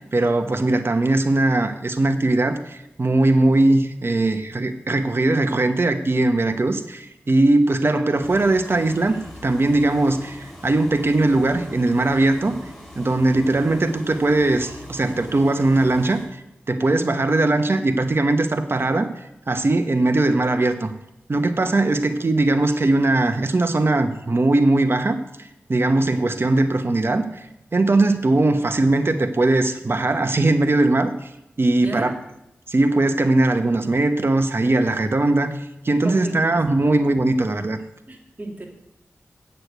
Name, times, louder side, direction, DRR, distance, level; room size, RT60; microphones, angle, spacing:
voice 1, 0.0-9.2 9.4-12.5 13.0-20.9 21.3-27.5 27.7-31.3 31.6-32.1 32.7-35.5 35.8-37.8, right 2 dB, 50° right, 8 dB, 1.2 m, -20 dB
sound 1, 8.2-16.2, left 1 dB, 5° left, 4.9 m, -41 dB
voice 2, 31.8-32.2 36.0-36.8 38.1-38.7, right 1 dB, 35° right, 1 dB, 2.3 m, -33 dB
8.2 x 6.8 x 8.2 m, 0.89 s
cardioid pair, 40°, 5 cm